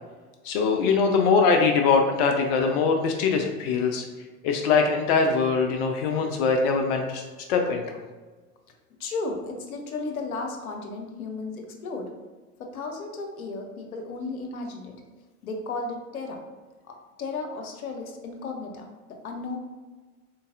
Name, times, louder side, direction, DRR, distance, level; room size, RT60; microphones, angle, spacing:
voice 1, 0.4-4.1 4.4-7.2 7.5-8.0, left 5 dB, 45° left, 3 dB, 0.4 m, -22 dB
voice 2, 9.0-12.1 12.7-14.9 15.4-16.4 16.9-19.6, left 3 dB, 70° left, 3 dB, 0.8 m, -34 dB
3.8 x 3.6 x 2.6 m, 1.3 s
figure-of-eight pair, 80°, 45 cm